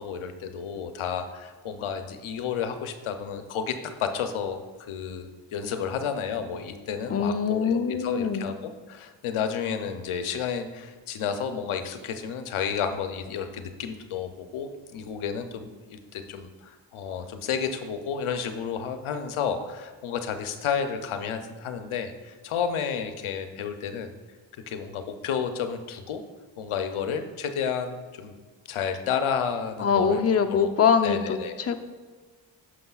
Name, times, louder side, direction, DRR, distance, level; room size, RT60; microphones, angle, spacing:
voice 1, 0.0-4.6 4.9-24.1 24.5-26.2 26.6-28.3 28.7-30.2 30.6-30.7 31.0-31.6, left 7 dB, 90° left, 7 dB, 0.7 m, -31 dB
voice 2, 7.1-8.5 29.8-31.8, left 6 dB, 30° left, 6 dB, 0.6 m, -23 dB
9.5 x 6.2 x 2.3 m, 1.4 s
cardioid pair, 55°, 48 cm